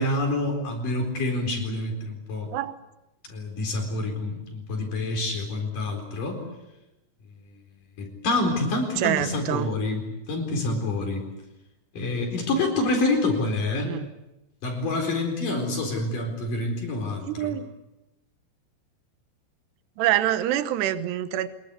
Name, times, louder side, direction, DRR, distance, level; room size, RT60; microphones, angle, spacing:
voice 1, 0.0-2.5 3.3-6.4 8.0-11.2 11.9-13.9 14.6-17.6, left 2 dB, 50° left, 3 dB, 5.7 m, -27 dB
voice 2, 9.0-9.7 13.8-14.0 17.3-17.7 20.0-21.5, right 13 dB, 80° right, 12 dB, 3.2 m, -25 dB
25.5 x 22.0 x 8.3 m, 0.97 s
omnidirectional pair, 4.9 m